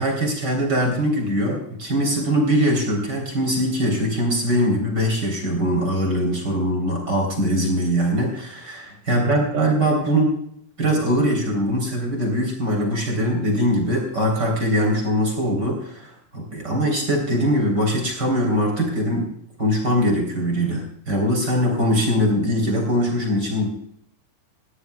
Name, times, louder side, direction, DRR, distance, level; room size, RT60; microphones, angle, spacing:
voice 1, 0.0-10.3 10.8-19.3 19.6-23.7, equal, 25° right, 1 dB, 3.3 m, -22 dB
20.0 x 15.5 x 2.3 m, 0.69 s
omnidirectional pair, 5.4 m